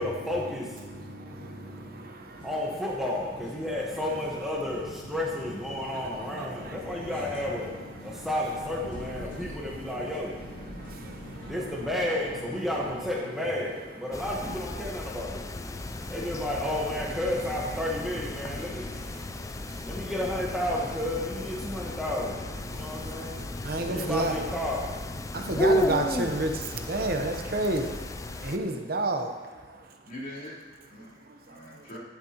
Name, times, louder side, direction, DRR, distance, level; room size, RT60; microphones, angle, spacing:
voice 1, 0.0-26.1, left 1 dB, ahead, -4 dB, 1.2 m, -33 dB
voice 2, 0.9-2.5 5.9-7.0 8.1-8.3 10.7-11.5 15.7-16.1 19.2-19.9 22.7-24.4 25.3-30.0 31.3-31.9, right 2 dB, 55° right, 4 dB, 0.9 m, -32 dB
sound 1, 2.4-13.0, equal, 85° left, 1.6 m, -45 dB
sound 2, 14.1-28.6, left 1 dB, 20° left, 0.3 m, -34 dB
voice 3, 30.0-32.0, left 1 dB, 50° left, -9 dB, 3.5 m, -43 dB
11.5 x 10.5 x 2.9 m, 1.4 s
head